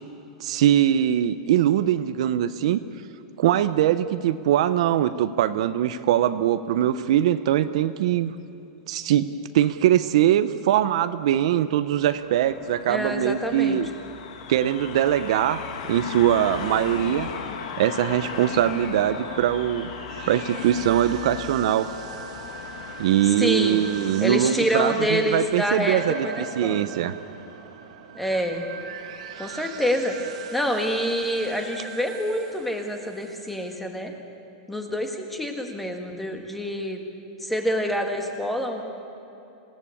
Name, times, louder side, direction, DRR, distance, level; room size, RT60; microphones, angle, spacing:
voice 1, 0.4-2.8 3.4-8.3 8.9-9.3 9.5-13.9 14.5-15.6 15.9-17.3 17.8-19.9 20.3-21.9 23.0-27.1, right 11 dB, 60° right, 12 dB, 0.8 m, -22 dB
sound 1, 11.9-25.9, left 7 dB, 75° left, 2.2 m, -38 dB
voice 2, 12.9-13.8 23.4-23.9 24.2-26.9 28.2-28.6 29.4-30.2 30.5-34.1 34.7-37.0 37.4-38.8, equal, ahead, 3 dB, 1.6 m, -26 dB
sound 2, 13.8-20.8, left 4 dB, 30° left, 4.9 m, -47 dB
sound 3, 17.8-33.8, right 7 dB, 80° right, 2.3 m, -41 dB
26.5 x 17.5 x 8.5 m, 2.9 s
supercardioid pair, 180°, 4 cm